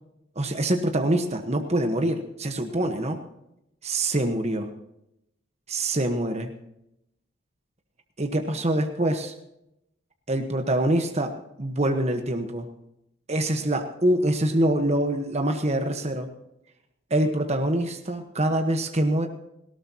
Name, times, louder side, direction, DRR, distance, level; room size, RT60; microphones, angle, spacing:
voice 1, 0.3-3.2 3.8-4.7 5.7-6.5 8.2-9.3 10.3-12.7 13.3-16.3 17.1-19.3, right 1 dB, 35° right, 5 dB, 1.2 m, -25 dB
19.0 x 17.5 x 2.9 m, 0.81 s
head